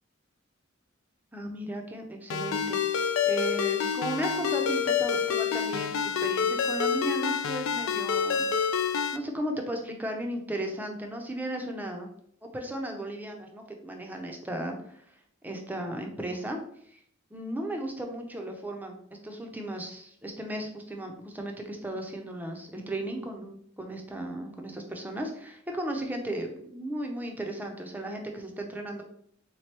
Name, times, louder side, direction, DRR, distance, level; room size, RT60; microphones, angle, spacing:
voice 1, 1.3-12.1 12.4-15.0 15.4-16.6 16.9-17.0 17.3-18.9 19.2-29.0, right 1 dB, 10° right, 2 dB, 0.6 m, -35 dB
Ringtone, 2.3-9.2, left 7 dB, 80° left, 0.4 m, -27 dB
3.6 x 2.9 x 3.2 m, 0.67 s
head